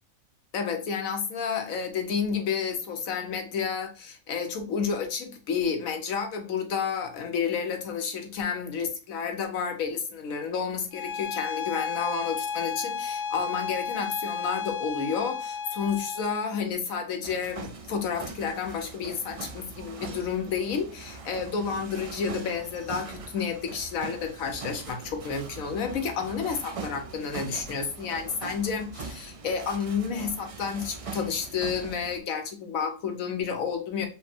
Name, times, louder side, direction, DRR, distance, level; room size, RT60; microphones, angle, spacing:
voice 1, 0.5-34.1, left 6 dB, 85° left, 5 dB, 1.3 m, -30 dB
Bowed string instrument, 10.9-16.5, left 6 dB, 65° left, 0.9 m, -33 dB
sound 1, 17.2-32.2, right 4 dB, 55° right, 0.3 m, -41 dB
5.2 x 2.1 x 4.3 m, 0.35 s
omnidirectional pair, 1.4 m